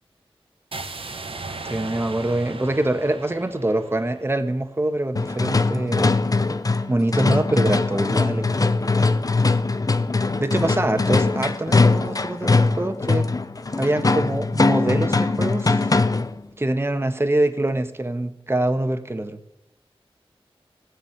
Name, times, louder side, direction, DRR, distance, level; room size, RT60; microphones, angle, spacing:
sound 1, 0.7-4.8, right 3 dB, 65° right, 1.3 m, -37 dB
voice 1, 1.6-6.2 6.9-8.7 10.4-13.3 13.8-15.9 16.6-19.4, right 1 dB, 25° right, 8 dB, 1.3 m, -24 dB
sound 2, 5.1-16.4, left 3 dB, 35° left, 0.7 m, -21 dB
16.5 x 6.4 x 8.9 m, 0.85 s
wide cardioid pair, 65°, 10 cm